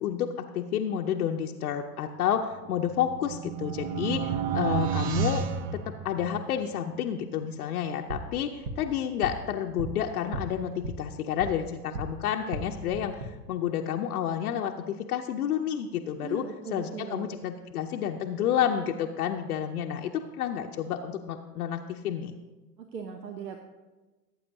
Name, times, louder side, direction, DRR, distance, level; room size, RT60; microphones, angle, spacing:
voice 1, 0.0-5.4 5.7-16.5 16.7-22.4, left 9 dB, 65° left, 3 dB, 0.7 m, -30 dB
sound 1, 2.6-6.5, right 7 dB, 30° right, 0.5 m, -31 dB
sound 2, 7.9-12.1 12.4-13.3, right 2 dB, 45° right, 1.4 m, -38 dB
voice 2, 16.2-17.3 22.8-23.6, right 6 dB, 85° right, 6 dB, 1.0 m, -39 dB
17.0 x 8.4 x 2.7 m, 1.2 s
figure-of-eight pair, 95°, 49 cm